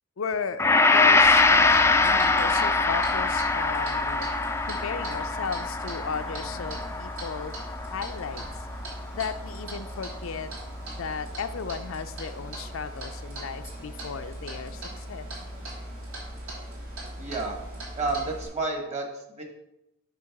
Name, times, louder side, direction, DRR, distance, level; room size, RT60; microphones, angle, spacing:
voice 1, 0.2-0.6 0.9-4.3 4.6-7.5 7.9-8.4 9.1-10.5 10.9-15.3, left 6 dB, 75° left, 10 dB, 0.5 m, -35 dB
Gong, 0.6-9.0 9.4-9.5, left 3 dB, 15° left, 0.3 m, -23 dB
Clock, 1.2-18.5, right 1 dB, 75° right, 2.9 m, -39 dB
voice 2, 17.2-17.6 18.0-19.1 19.4-19.5, right 3 dB, 35° right, 2 dB, 1.4 m, -30 dB
9.4 x 3.1 x 5.9 m, 0.91 s
head